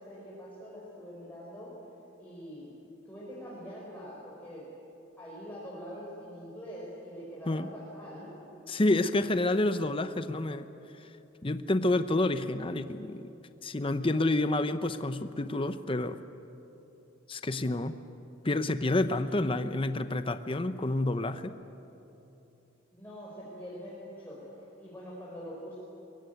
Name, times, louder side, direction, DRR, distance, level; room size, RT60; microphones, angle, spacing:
voice 1, 0.0-1.7 2.2-2.8 3.0-4.7 5.2-8.5 19.1-19.6 22.9-24.5 24.8-25.7, equal, 10° left, -7 dB, 4.8 m, -44 dB
voice 2, 8.7-10.7 11.4-13.3 13.6-16.2 17.3-18.0 18.4-21.5, left 2 dB, 30° left, 10 dB, 0.8 m, -29 dB
22.5 x 22.5 x 9.4 m, 2.9 s
head